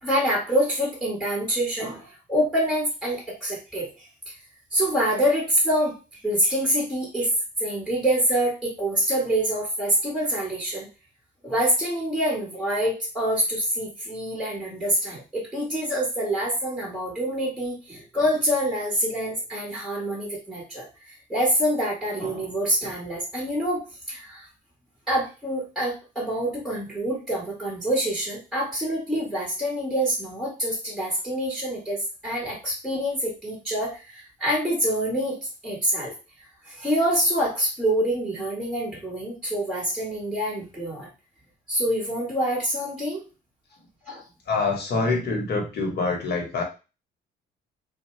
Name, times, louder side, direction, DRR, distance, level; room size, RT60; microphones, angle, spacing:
voice 1, 0.0-4.1 4.7-7.3 7.6-10.8 11.4-24.5 25.1-32.0 32.2-35.4 35.6-36.1 36.6-41.1 41.7-43.2 44.1-44.2, equal, ahead, -5 dB, 1.5 m, -26 dB
voice 2, 44.4-46.6, left 3 dB, 55° left, 1 dB, 1.2 m, -25 dB
2.7 x 2.3 x 3.2 m, 0.31 s
cardioid pair, 95°, 19 cm